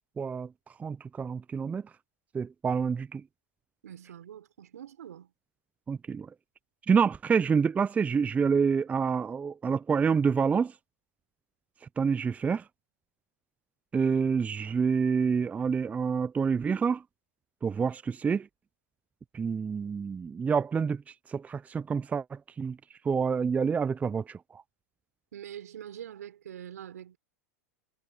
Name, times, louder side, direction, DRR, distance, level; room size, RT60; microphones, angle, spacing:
voice 1, 0.2-0.5 0.8-1.8 2.3-3.2 5.9-6.3 6.9-10.7 12.0-12.6 13.9-17.0 17.6-18.5 19.3-21.0 21.3-22.8 23.0-24.6, right 6 dB, 15° right, 0.5 m, -27 dB
voice 2, 3.8-5.3 25.3-27.2, right 10 dB, 80° right, 4.2 m, -44 dB
hypercardioid pair, 100°, 9 cm